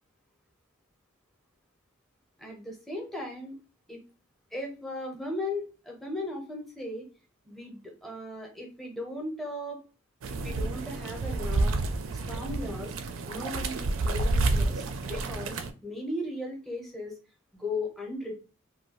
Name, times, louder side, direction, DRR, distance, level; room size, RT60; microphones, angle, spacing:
voice 1, 2.4-3.6 3.9-4.0 4.5-7.1 7.4-9.8 10.3-11.8 12.1-12.9 13.3-17.2 17.5-18.4, left 1 dB, ahead, -1 dB, 0.6 m, -37 dB
sound 1, 10.2-15.7, right 2 dB, 75° right, 0.4 m, -29 dB
2.6 x 2.2 x 2.9 m, 0.34 s
head